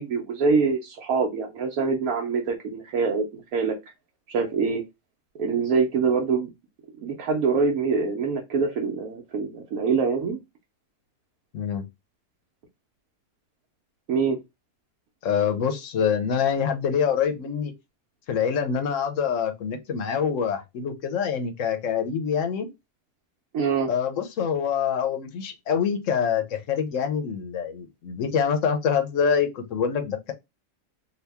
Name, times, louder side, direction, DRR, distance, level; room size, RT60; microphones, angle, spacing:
voice 1, 0.0-3.8 4.3-4.8 5.4-6.5 7.0-10.4 14.1-14.4 23.5-23.9, right 5 dB, 80° right, 1.2 m, -24 dB
voice 2, 11.5-11.9 15.2-17.7 18.3-22.7 23.9-30.3, left 7 dB, 65° left, 1.0 m, -25 dB
2.9 x 2.7 x 3.3 m
omnidirectional pair, 1.5 m